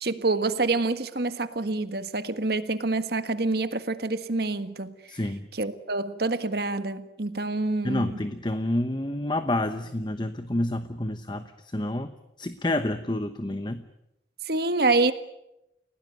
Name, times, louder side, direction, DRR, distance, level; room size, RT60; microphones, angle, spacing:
voice 1, 0.0-4.9 5.5-8.2 14.5-15.1, right 3 dB, 60° right, 11 dB, 1.6 m, -27 dB
voice 2, 5.1-5.5 7.8-13.8, left 1 dB, 25° left, 10 dB, 1.0 m, -29 dB
30.0 x 17.5 x 9.2 m, 0.88 s
head